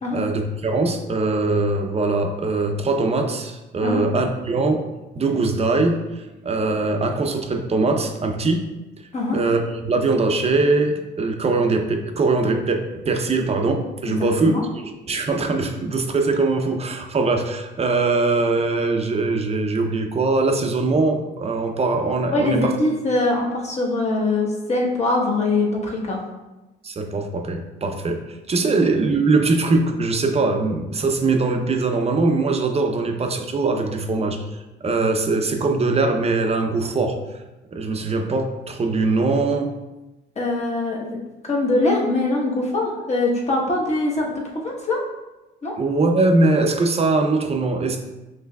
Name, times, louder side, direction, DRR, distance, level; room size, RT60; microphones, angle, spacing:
voice 1, 0.1-4.8 5.1-8.6 9.3-14.5 14.8-22.7 26.8-34.4 34.8-37.2 37.7-39.7 45.8-48.0, right 3 dB, 30° right, 4 dB, 0.6 m, -21 dB
voice 2, 14.1-14.6 22.3-26.2 28.6-28.7 40.3-41.2 41.4-45.0 45.6-45.7, left 2 dB, 35° left, -3 dB, 1.2 m, -22 dB
5.7 x 3.1 x 2.3 m, 1.0 s
cardioid pair, 90°, 20 cm